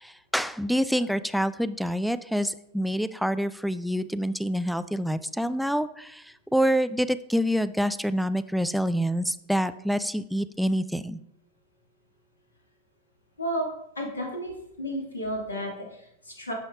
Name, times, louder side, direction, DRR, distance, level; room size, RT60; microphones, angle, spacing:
voice 1, 0.0-11.2, equal, ahead, 13 dB, 0.3 m, -27 dB
voice 2, 13.4-13.7 14.0-14.5 14.8-16.5, equal, 75° left, 0 dB, 1.9 m, -32 dB
10.5 x 5.2 x 2.4 m, 0.79 s
figure-of-eight pair, 90°, 0 cm